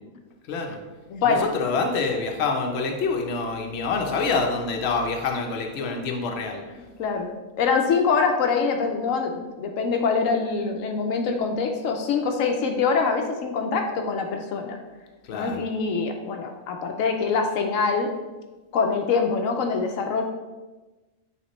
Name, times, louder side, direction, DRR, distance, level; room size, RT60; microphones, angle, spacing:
voice 1, 0.4-0.8 1.2-6.6 15.2-15.6, left 4 dB, 60° left, 2 dB, 1.0 m, -26 dB
voice 2, 1.1-1.5 7.0-7.3 7.6-14.8 15.3-18.1 18.7-20.2, left 5 dB, 85° left, 3 dB, 1.0 m, -24 dB
8.6 x 3.6 x 3.1 m, 1.2 s
omnidirectional pair, 1.3 m